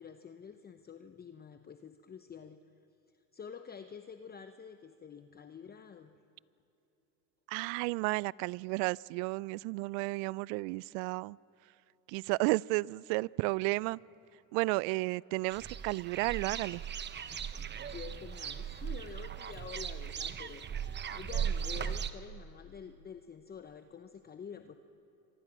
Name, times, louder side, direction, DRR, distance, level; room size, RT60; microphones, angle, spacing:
voice 1, 0.0-2.6 3.3-6.2 17.9-24.8, left 7 dB, 20° left, 8 dB, 0.9 m, -48 dB
voice 2, 7.5-11.4 12.1-14.0 14.5-16.8, right 24 dB, 60° right, 25 dB, 0.5 m, -32 dB
sound 1, 15.5-22.1, right 8 dB, 25° right, 0.9 m, -38 dB
27.5 x 24.5 x 6.2 m, 2.9 s
hypercardioid pair, 100°, 46 cm